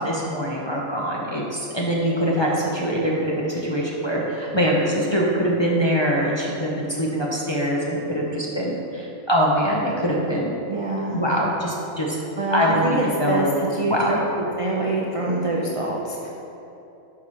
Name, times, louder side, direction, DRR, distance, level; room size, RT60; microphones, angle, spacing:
voice 1, 0.0-10.5 11.1-12.2 12.5-13.6 13.9-14.2, equal, 30° left, -5 dB, 0.5 m, -23 dB
voice 2, 10.7-11.2 12.4-14.2 14.6-16.3, right 2 dB, 65° right, -2 dB, 0.3 m, -25 dB
10.5 x 4.8 x 2.9 m, 2.9 s
omnidirectional pair, 1.4 m